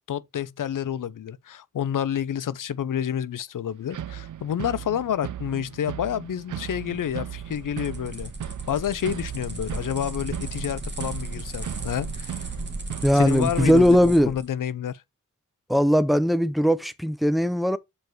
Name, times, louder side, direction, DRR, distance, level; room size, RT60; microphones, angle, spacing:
voice 1, 0.1-12.5 13.1-15.0, left 9 dB, 80° left, 0.6 m, -29 dB
sound 1, 3.9-14.0, right 10 dB, 70° right, 0.6 m, -37 dB
sound 2, 6.8-14.5, right 2 dB, 35° right, 1.9 m, -36 dB
voice 2, 13.0-14.3 15.7-17.8, equal, ahead, 0.5 m, -19 dB
7.1 x 4.8 x 4.5 m
wide cardioid pair, 145°, 32 cm